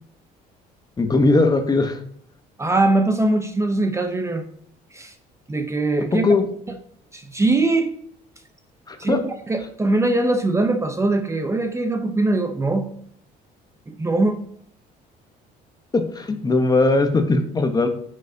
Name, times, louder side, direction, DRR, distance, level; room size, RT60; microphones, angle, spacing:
voice 1, 1.0-2.0 6.1-6.4 8.9-9.2 15.9-17.9, left 3 dB, 25° left, 7 dB, 1.1 m, -19 dB
voice 2, 2.6-4.4 4.9-5.1 5.5-6.2 7.1-7.9 9.0-12.9 13.9-14.4, right 2 dB, 15° right, 7 dB, 0.8 m, -21 dB
9.1 x 6.6 x 2.8 m, 0.66 s
cardioid pair, 110°, 17 cm